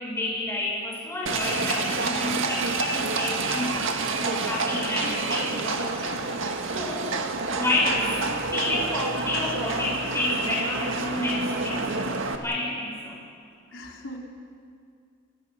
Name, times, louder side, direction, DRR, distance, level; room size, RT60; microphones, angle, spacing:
voice 1, 0.0-3.9 4.2-6.1 6.4-7.1 7.5-8.2 8.5-11.8 12.4-13.2, left 2 dB, 15° left, -5 dB, 7.6 m, -29 dB
Livestock farm animals working animals, 1.3-12.4, right 3 dB, 75° right, 1.8 m, -28 dB
voice 2, 13.7-14.2, left 1 dB, 70° left, 0 dB, 3.8 m, -41 dB
29.5 x 21.5 x 5.8 m, 2.2 s
head